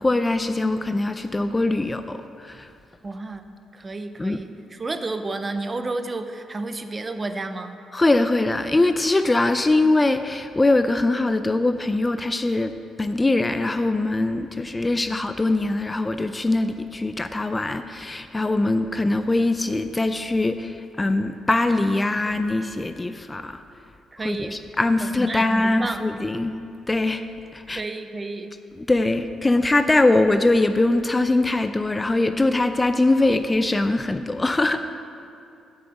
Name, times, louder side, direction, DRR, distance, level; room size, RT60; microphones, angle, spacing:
voice 1, 0.0-2.7 4.2-4.4 7.9-23.6 24.2-26.6 26.9-27.2 27.5-27.8 28.9-34.9, left 2 dB, 20° left, 9 dB, 0.4 m, -22 dB
voice 2, 3.0-7.7 24.1-24.6 25.0-26.0 27.7-28.5, right 3 dB, 30° right, 9 dB, 0.6 m, -31 dB
8.0 x 6.6 x 7.2 m, 2.6 s
cardioid pair, 90°, 0 cm